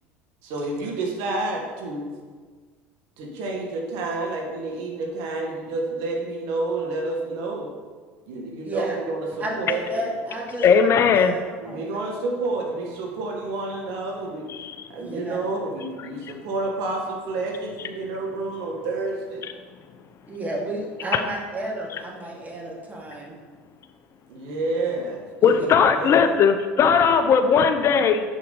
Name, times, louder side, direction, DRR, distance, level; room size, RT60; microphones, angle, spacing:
voice 1, 0.4-2.1 3.2-7.7 8.3-10.1 11.6-14.4 14.9-19.4 24.3-26.3, right 2 dB, 65° right, 1 dB, 1.6 m, -29 dB
voice 2, 8.6-9.0 9.4-10.9 11.1-11.9 14.9-15.4 20.3-23.4 25.4-25.6, right 1 dB, 25° right, -2 dB, 2.4 m, -32 dB
voice 3, 10.6-11.4 14.6-14.7 21.1-21.2 25.4-28.2, left 6 dB, 45° left, 8 dB, 0.6 m, -18 dB
7.3 x 5.6 x 5.3 m, 1.5 s
hypercardioid pair, 75°, 7 cm